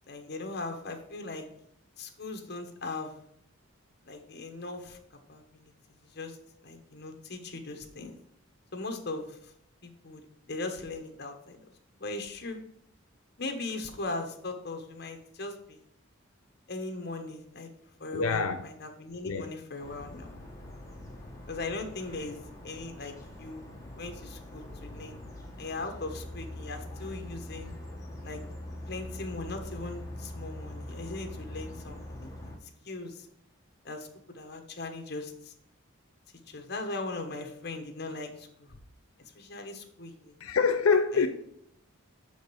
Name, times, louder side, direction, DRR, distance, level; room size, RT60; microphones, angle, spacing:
voice 1, 0.1-1.5 2.0-3.1 4.0-5.0 5.3-5.7 6.1-8.2 8.7-9.5 9.8-10.2 10.5-11.7 12.0-12.6 13.4-15.8 16.7-17.7 18.0-20.3 21.5-23.7 24.0-25.2 25.6-27.7 28.2-28.4 28.9-32.6 32.8-33.3 33.8-34.1 34.3-35.5 36.5-38.8 39.3-40.3 41.1-41.2, left 3 dB, 50° left, 1.2 m, -39 dB
voice 2, 18.1-18.6 19.2-19.6 40.4-41.3, left 5 dB, 90° left, 0.6 m, -25 dB
sound 1, 19.8-32.6, left 1 dB, 15° left, 1.2 m, -43 dB
6.1 x 5.1 x 6.9 m
head